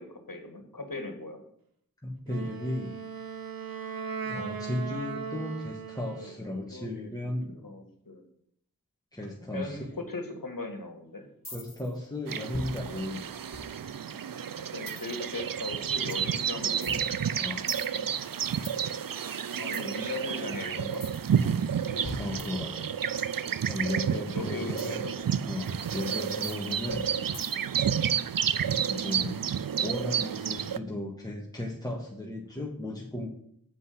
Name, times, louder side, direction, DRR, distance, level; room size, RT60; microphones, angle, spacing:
voice 1, 0.0-1.4 6.2-7.1 7.5-8.2 9.5-11.3 14.6-17.0 19.5-21.0 24.0-25.1, left 2 dB, 70° left, 4 dB, 1.8 m, -39 dB
voice 2, 2.0-2.9 4.2-7.5 9.1-9.9 11.5-13.2 17.4-17.7 21.8-22.9 23.6-25.1 25.5-27.5 28.9-29.4 29.8-33.3, left 1 dB, 10° left, -2 dB, 1.7 m, -35 dB
Wind instrument woodwind instrument, 2.3-6.5, right 6 dB, 90° right, 1.0 m, -38 dB
sound 1, 11.4-11.9 12.5-14.1 14.9-15.3 16.1-16.3 16.8-18.8 19.7-19.9 20.9-21.3 22.0-23.2 24.8-25.0 25.6-25.7 26.4-27.8, left 1 dB, 50° left, 2.2 m, -42 dB
sound 2, 12.3-30.8, right 8 dB, 75° right, 0.5 m, -30 dB
7.9 x 5.4 x 7.7 m, 0.68 s
wide cardioid pair, 40°, 34 cm